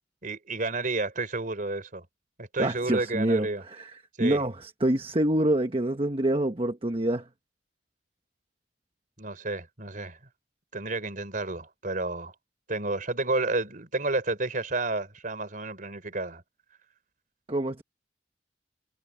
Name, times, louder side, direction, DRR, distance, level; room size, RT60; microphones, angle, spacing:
voice 1, 0.2-2.0 2.4-3.6 4.2-4.4 9.2-10.2 10.7-12.3 12.7-16.4, right 2 dB, 45° right, 4.1 m, -31 dB
voice 2, 2.6-3.9 4.2-7.3 17.5-17.8, right 1 dB, 30° right, 1.2 m, -26 dB
head